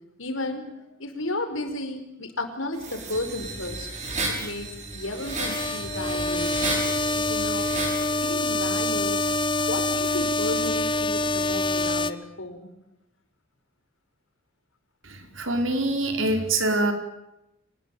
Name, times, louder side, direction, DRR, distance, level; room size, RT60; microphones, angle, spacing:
voice 1, 0.2-3.9 4.3-6.6 6.8-7.7 8.2-9.2 9.7-12.7, left 2 dB, 80° left, 7 dB, 5.2 m, -33 dB
sound 1, 2.8-8.1, right 3 dB, 35° right, 6.7 m, -33 dB
sound 2, 5.1-12.1, left 2 dB, 25° left, 1.1 m, -26 dB
voice 2, 15.0-16.9, right 2 dB, 75° right, 6 dB, 5.0 m, -25 dB
26.0 x 20.0 x 9.2 m, 0.88 s
head